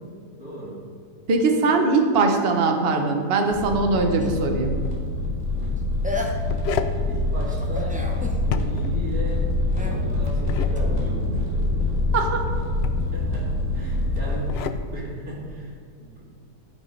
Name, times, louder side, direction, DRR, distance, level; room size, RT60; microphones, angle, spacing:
voice 1, 0.4-0.8 5.6-5.7 7.1-8.0 8.3-9.4 9.8-11.8 13.1-13.5 13.7-16.2, right 1 dB, 65° right, -6 dB, 3.4 m, -36 dB
voice 2, 1.3-4.8 12.1-12.4, right 3 dB, 45° right, 4 dB, 1.1 m, -21 dB
sound 1, 3.5-14.5, left 2 dB, 15° left, 3.0 m, -25 dB
sound 2, 4.2-4.8 5.8-5.9 6.0-6.7 7.5-8.4 9.7-10.0 10.8-10.9, left 2 dB, 10° right, 0.5 m, -33 dB
sound 3, 4.7-5.0 6.2-7.0 8.4-9.0 10.2-10.7 12.5-13.1 14.2-14.8, left 8 dB, 85° left, 0.5 m, -30 dB
13.0 x 5.4 x 5.4 m, 2.1 s
omnidirectional pair, 1.7 m